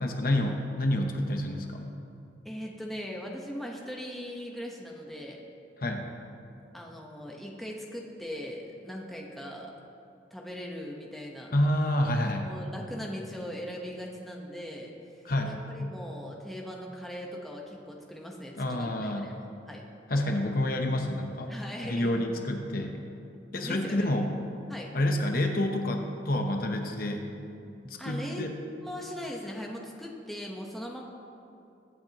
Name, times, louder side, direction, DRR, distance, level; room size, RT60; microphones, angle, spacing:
voice 1, 0.0-1.9 5.8-6.1 11.5-12.5 15.2-15.9 18.6-19.4 20.1-21.5 21.8-23.0 23.5-24.3 24.9-27.3 28.0-28.5, left 1 dB, 50° left, 3 dB, 0.9 m, -28 dB
voice 2, 2.4-5.4 6.7-9.7 10.3-11.5 12.4-19.3 19.7-19.8 21.5-22.3 23.6-24.2 24.7-24.9 28.0-28.5 28.8-31.0, equal, ahead, -2 dB, 1.1 m, -40 dB
22.0 x 8.8 x 3.0 m, 2.7 s
head